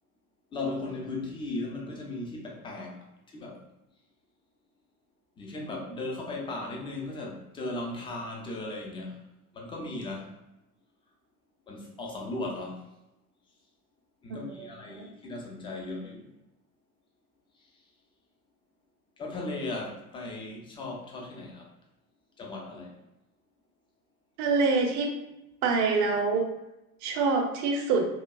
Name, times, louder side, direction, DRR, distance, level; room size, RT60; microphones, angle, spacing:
voice 1, 0.5-3.1 3.3-3.6 5.4-9.2 9.5-10.4 11.7-12.9 14.2-16.3 19.2-21.7 22.4-23.0, left 2 dB, 10° left, 0 dB, 0.4 m, -37 dB
voice 2, 24.4-25.1 25.6-26.5 27.0-28.1, right 4 dB, 40° right, 2 dB, 0.7 m, -25 dB
3.0 x 2.2 x 2.3 m, 0.93 s
figure-of-eight pair, 75°, 44 cm